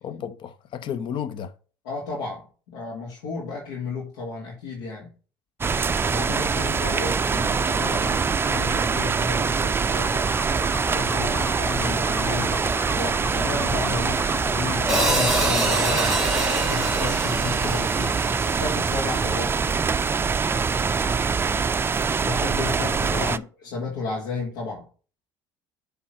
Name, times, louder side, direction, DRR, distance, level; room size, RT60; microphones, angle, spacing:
voice 1, 0.0-1.5 11.8-12.0 23.1-23.4, left 8 dB, 55° left, 0.9 m, -32 dB
voice 2, 1.8-5.1 6.1-10.2 10.9-16.2 16.7-18.2 18.6-19.5 22.2-24.9, left 4 dB, 80° left, 2.1 m, -33 dB
sound 1, 5.6-23.4, right 5 dB, 20° right, 0.5 m, -24 dB
sound 2, 10.0-16.2, left 2 dB, 20° left, 1.1 m, -35 dB
Hi-hat, 14.9-19.1, right 1 dB, 5° right, 3.0 m, -26 dB
7.5 x 3.7 x 5.8 m
hypercardioid pair, 75°, 10 cm